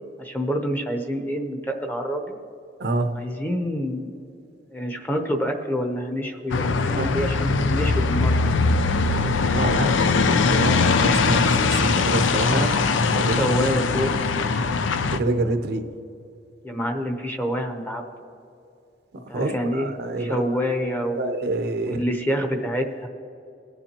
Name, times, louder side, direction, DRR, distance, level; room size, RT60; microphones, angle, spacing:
voice 1, 0.2-2.4 3.1-4.2 4.7-8.4 12.5-12.7 13.3-14.1 16.6-18.0 19.3-19.9 20.2-21.3 21.8-23.1, equal, 10° left, 3 dB, 0.8 m, -27 dB
voice 2, 2.8-3.2 6.9-7.1 9.2-12.7 13.1-13.5 15.0-15.9 19.3-20.4 21.2-22.0, right 2 dB, 60° right, 8 dB, 0.6 m, -27 dB
sound 1, 6.5-15.2, left 4 dB, 90° left, 0.5 m, -21 dB
21.5 x 7.1 x 2.9 m, 2.5 s
head